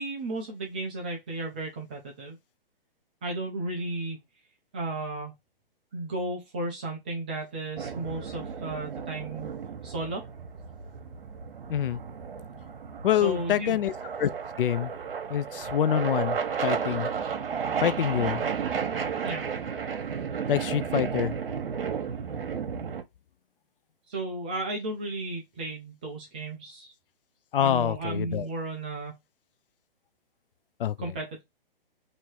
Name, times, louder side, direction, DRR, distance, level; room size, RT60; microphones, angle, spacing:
voice 1, 0.0-2.4 3.2-4.2 4.7-5.3 5.9-9.5 9.8-10.3 13.2-13.8 19.2-19.5 24.1-26.9 27.6-29.2 31.0-31.4, right 2 dB, 10° right, 0.3 m, -34 dB
sound 1, 7.8-23.0, right 6 dB, 70° right, 1.1 m, -33 dB
voice 2, 11.7-12.0 13.0-13.9 14.2-14.3 14.6-14.9 15.3-17.1 17.8-18.4 20.5-21.3 27.5-28.5 30.8-31.1, left 10 dB, 65° left, 0.5 m, -26 dB
3.1 x 2.8 x 4.4 m
hypercardioid pair, 145°, 29 cm